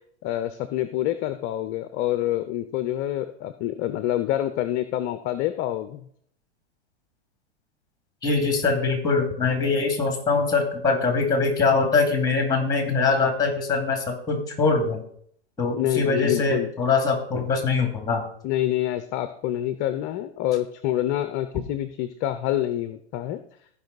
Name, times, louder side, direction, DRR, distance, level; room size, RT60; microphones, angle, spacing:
voice 1, 0.2-6.0 15.7-16.7 18.4-23.4, left 13 dB, 30° left, 11 dB, 0.6 m, -27 dB
voice 2, 8.2-15.0 15.6-18.2, left 4 dB, 10° left, 4 dB, 2.4 m, -23 dB
14.5 x 5.4 x 4.0 m, 0.65 s
hypercardioid pair, 125°, 34 cm